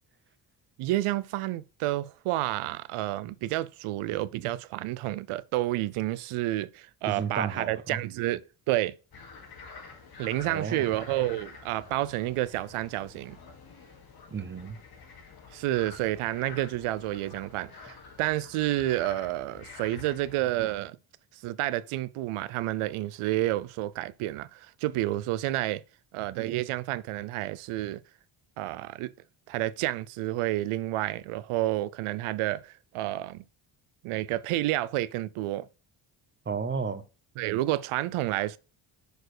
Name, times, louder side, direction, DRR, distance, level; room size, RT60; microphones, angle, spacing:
voice 1, 0.8-8.9 10.2-13.4 15.5-21.0 21.3-25.8 26.1-28.0 28.6-29.1 29.5-33.4 34.0-35.7 37.4-38.6, right 15 dB, 85° right, 0.6 m, -30 dB
voice 2, 7.1-8.0 10.4-10.8 14.3-14.8 36.5-37.0, right 5 dB, 25° right, 0.7 m, -32 dB
sound 1, 9.1-20.8, left 4 dB, 45° left, 1.9 m, -48 dB
6.5 x 4.4 x 4.8 m
cardioid pair, 115°, 49 cm